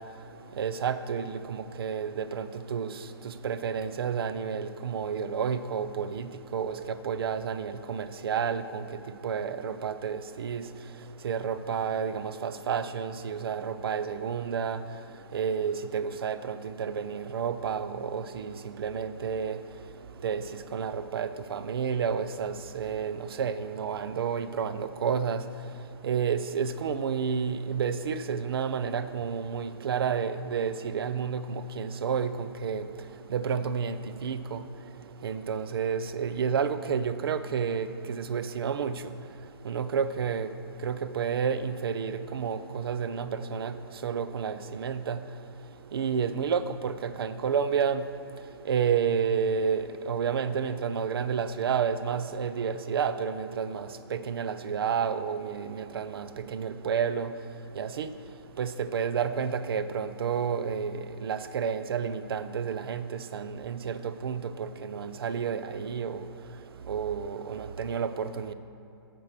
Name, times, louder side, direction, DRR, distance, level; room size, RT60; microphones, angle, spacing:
voice 1, 0.0-68.5, right 6 dB, 65° right, 12 dB, 0.6 m, -31 dB
8.9 x 6.1 x 6.4 m, 2.8 s
hypercardioid pair, 135°, 13 cm